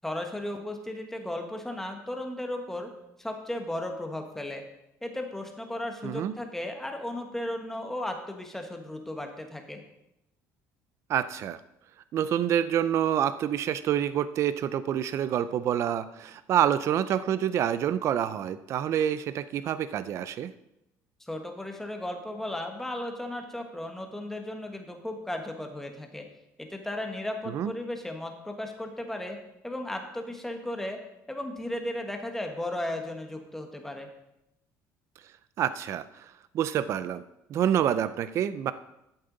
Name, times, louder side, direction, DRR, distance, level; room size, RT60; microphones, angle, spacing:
voice 1, 0.0-2.9 3.2-4.6 5.0-9.8 21.2-26.2 26.6-29.4 29.6-31.0 31.3-34.1, left 1 dB, 5° left, 3 dB, 1.3 m, -35 dB
voice 2, 6.0-6.3 11.1-11.6 12.1-20.5 27.5-27.7 35.6-36.2 36.5-37.2 37.5-38.7, right 10 dB, 50° right, 14 dB, 0.4 m, -27 dB
12.0 x 7.8 x 3.9 m, 0.86 s
cardioid pair, 135°, 6 cm